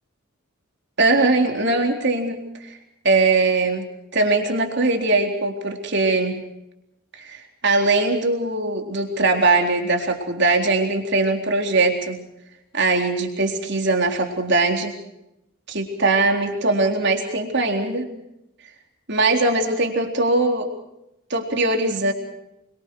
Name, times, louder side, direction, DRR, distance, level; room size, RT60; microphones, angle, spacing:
voice 1, 1.0-2.7 3.0-3.9 4.1-6.4 7.1-12.2 12.7-15.0 15.7-18.1 19.1-20.7 21.3-22.1, right 2 dB, 50° right, 3 dB, 4.0 m, -21 dB
28.0 x 24.0 x 4.8 m, 0.85 s
head